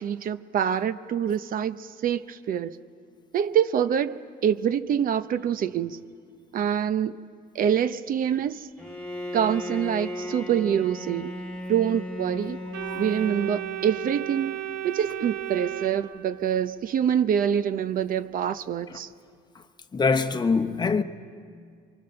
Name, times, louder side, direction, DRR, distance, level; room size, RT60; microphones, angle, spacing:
voice 1, 0.0-2.7 3.3-6.0 6.5-7.2 7.5-8.7 9.3-11.3 11.7-12.6 13.0-19.1, right 9 dB, 55° right, 0.8 m, -25 dB
Bowed string instrument, 8.8-14.2, left 1 dB, 5° left, 2.1 m, -36 dB
Organ, 12.7-16.7, right 14 dB, 85° right, 1.1 m, -34 dB
voice 2, 19.9-21.0, left 4 dB, 25° left, 1.0 m, -23 dB
25.0 x 24.0 x 6.7 m
cardioid pair, 110°, 17 cm